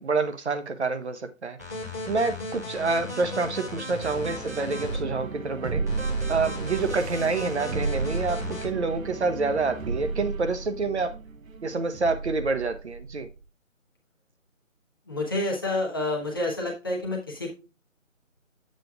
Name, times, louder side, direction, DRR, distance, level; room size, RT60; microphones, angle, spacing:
voice 1, 0.0-1.6 2.1-5.8 6.3-11.1 11.6-13.3, right 3 dB, 55° right, 1.0 m, -27 dB
sound 1, 1.6-5.0 5.9-8.7, left 2 dB, 15° right, 0.7 m, -36 dB
sound 2, 4.0-13.4, right 4 dB, 80° right, 0.8 m, -33 dB
voice 2, 15.1-17.5, left 2 dB, 15° left, 0.8 m, -28 dB
8.9 x 7.6 x 2.3 m
figure-of-eight pair, 160°, 40 cm